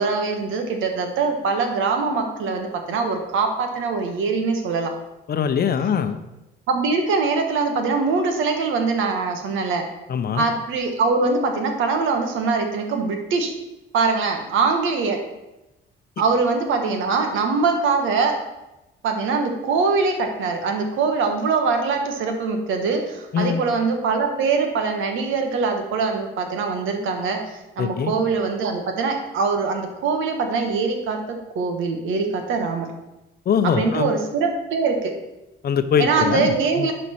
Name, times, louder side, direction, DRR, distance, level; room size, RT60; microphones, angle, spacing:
voice 1, 0.0-4.9 6.7-9.9 10.3-13.5 13.9-15.2 16.2-18.3 19.0-32.9 33.6-35.1 36.0-36.9, right 4 dB, 85° right, 4 dB, 1.3 m, -23 dB
voice 2, 5.3-6.2 10.1-10.4 23.3-23.6 27.8-28.1 33.5-34.1 35.6-36.9, left 7 dB, 50° left, 10 dB, 0.7 m, -22 dB
10.5 x 4.4 x 4.4 m, 0.96 s
cardioid pair, 90°, 20 cm